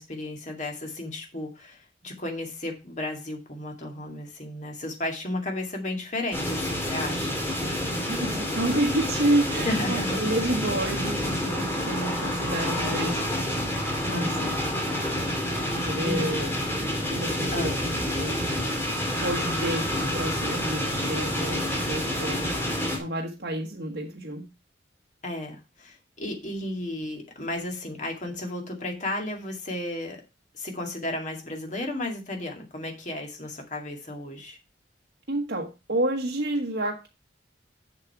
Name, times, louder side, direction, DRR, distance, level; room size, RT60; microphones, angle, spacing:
voice 1, 0.0-7.3 9.6-10.3 14.1-14.6 15.7-16.3 17.5-17.8 25.2-30.2 30.5-34.6, left 1 dB, 40° left, 2 dB, 2.2 m, -34 dB
sound 1, 6.3-23.0, left 1 dB, 15° left, 2.3 m, -28 dB
voice 2, 8.1-13.7 14.0-14.5 15.6-16.5 16.8-18.4 19.2-22.7 23.0-24.5 35.3-37.1, right 1 dB, 60° right, 0 dB, 1.3 m, -30 dB
7.5 x 7.1 x 4.7 m, 0.28 s
head